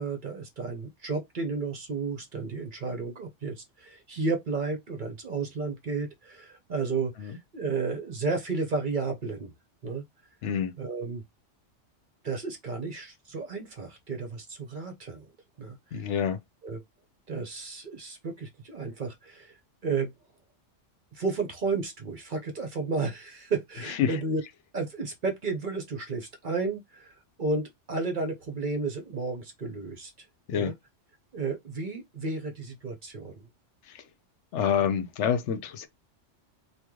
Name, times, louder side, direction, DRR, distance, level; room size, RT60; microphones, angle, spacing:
voice 1, 0.0-9.5 9.8-10.0 10.8-11.2 12.2-15.3 15.6-16.1 16.6-16.8 17.3-19.6 19.8-20.1 21.1-24.4 24.7-30.1 30.5-30.7 31.3-33.5, right 4 dB, 50° right, 0.8 m, -32 dB
voice 2, 10.4-10.7 15.9-16.4 23.9-24.2 30.5-30.7 33.9-34.1 34.5-35.9, left 8 dB, 75° left, 0.9 m, -27 dB
3.0 x 2.3 x 3.6 m
omnidirectional pair, 1.3 m